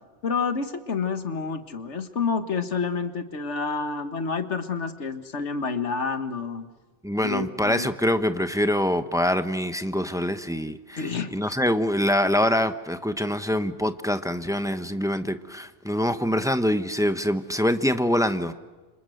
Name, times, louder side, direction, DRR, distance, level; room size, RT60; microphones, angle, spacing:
voice 1, 0.2-6.7 7.2-7.9 11.0-11.3, left 5 dB, 75° left, 9 dB, 1.8 m, -29 dB
voice 2, 7.0-18.5, left 1 dB, 5° right, 9 dB, 1.0 m, -25 dB
29.0 x 26.0 x 7.9 m, 1.2 s
omnidirectional pair, 1.2 m